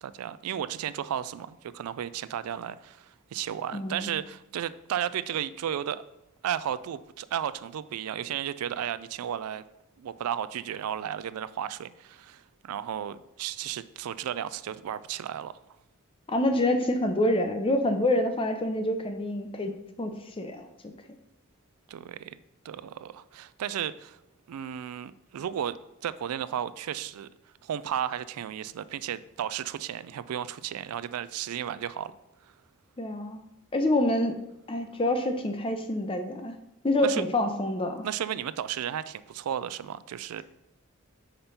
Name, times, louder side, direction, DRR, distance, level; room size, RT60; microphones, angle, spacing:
voice 1, 0.0-3.1 3.3-6.0 6.4-9.6 10.0-15.5 21.9-22.4 22.6-24.2 24.5-25.8 26.0-27.3 27.6-32.1 37.0-37.2 38.0-40.4, right 10 dB, 90° right, 16 dB, 0.3 m, -34 dB
voice 2, 3.7-4.1 16.3-20.9 33.0-33.5 33.7-34.4 34.7-36.5 36.8-38.1, left 1 dB, 25° left, 6 dB, 0.6 m, -27 dB
5.1 x 4.3 x 5.5 m, 0.87 s
head